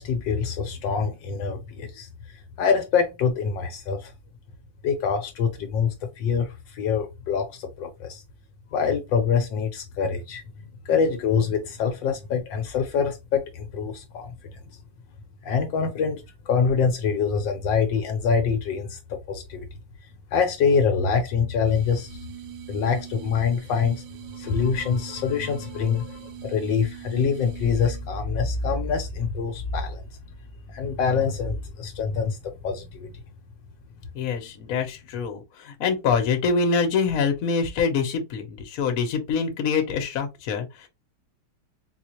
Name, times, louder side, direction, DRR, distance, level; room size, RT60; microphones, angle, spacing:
voice 1, 0.0-4.1 4.8-8.2 8.7-10.4 10.8-14.3 15.4-19.7 20.3-22.2 22.7-24.0 24.3-30.0 30.7-33.1, left 6 dB, 75° left, 1.3 m, -25 dB
sound 1, 21.6-28.1, right 12 dB, 75° right, 1.3 m, -42 dB
voice 2, 34.1-40.9, left 5 dB, 55° left, 1.1 m, -25 dB
4.1 x 2.4 x 2.9 m
omnidirectional pair, 2.2 m